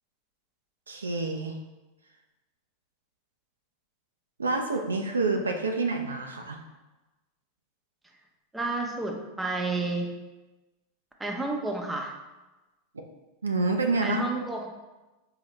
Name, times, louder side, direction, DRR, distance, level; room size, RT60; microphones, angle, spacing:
voice 1, 0.9-1.6 4.4-6.6 13.4-14.2, right 3 dB, 90° right, 3 dB, 0.4 m, -27 dB
voice 2, 8.5-10.1 11.2-12.1 14.0-14.7, right 2 dB, 10° right, 1 dB, 0.6 m, -30 dB
3.9 x 2.8 x 3.2 m, 1.1 s
hypercardioid pair, 95°, 0 cm